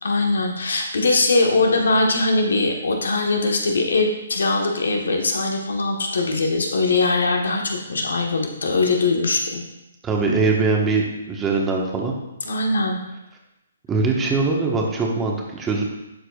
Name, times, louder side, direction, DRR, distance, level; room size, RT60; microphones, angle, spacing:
voice 1, 0.0-9.6 12.4-13.0, left 3 dB, 70° left, 2 dB, 1.2 m, -21 dB
voice 2, 10.0-12.1 13.9-15.8, right 3 dB, 15° right, -1 dB, 1.3 m, -22 dB
11.5 x 4.7 x 2.4 m, 0.93 s
figure-of-eight pair, 135°, 0 cm